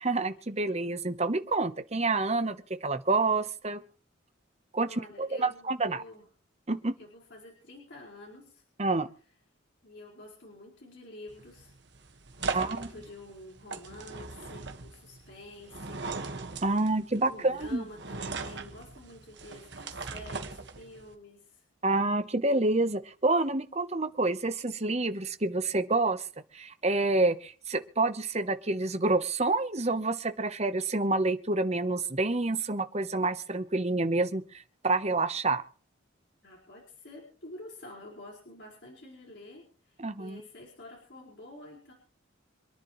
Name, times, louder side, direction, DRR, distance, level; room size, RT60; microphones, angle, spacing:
voice 1, 0.0-3.8 4.7-6.0 6.7-6.9 8.8-9.1 12.5-12.9 16.6-17.8 21.8-26.2 26.5-35.6 40.0-40.4, right 2 dB, 35° right, 10 dB, 1.0 m, -28 dB
voice 2, 4.8-6.2 7.0-8.6 9.8-11.7 12.4-16.1 16.5-16.6 17.2-21.6 36.4-41.9, left 1 dB, 60° left, -3 dB, 5.0 m, -49 dB
sound 1, 11.3-21.1, right 4 dB, 60° right, 1.6 m, -39 dB
27.0 x 10.5 x 3.2 m, 0.40 s
head